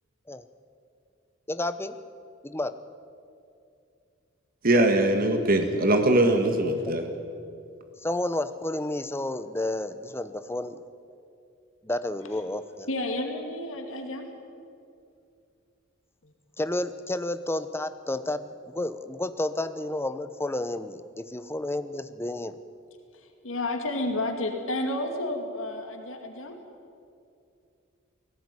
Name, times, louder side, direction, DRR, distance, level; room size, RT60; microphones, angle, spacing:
voice 1, 1.5-2.0 2.4-2.8 8.0-10.8 11.8-12.9 16.6-22.6, left 1 dB, 10° left, 12 dB, 0.8 m, -31 dB
voice 2, 4.6-7.0, right 1 dB, 45° right, 5 dB, 1.7 m, -21 dB
voice 3, 12.9-14.3 16.2-16.3 23.1-26.6, left 1 dB, 75° left, 4 dB, 2.5 m, -31 dB
19.0 x 17.0 x 9.6 m, 2.5 s
head